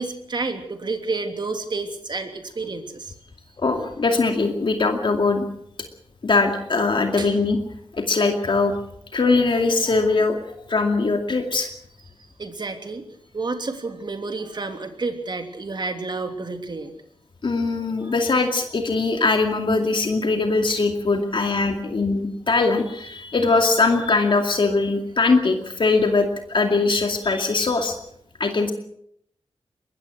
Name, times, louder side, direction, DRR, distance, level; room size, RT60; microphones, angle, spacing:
voice 1, 0.0-3.1 7.2-7.3 12.4-13.0 13.3-16.9 18.0-18.1, right 3 dB, 45° right, 5 dB, 3.1 m, -30 dB
voice 2, 3.6-5.5 6.2-7.6 7.9-8.7 9.1-11.7 17.4-28.0 28.4-28.7, left 3 dB, 55° left, 4 dB, 2.4 m, -21 dB
22.5 x 20.5 x 6.3 m, 0.72 s
wide cardioid pair, 85°, 10 cm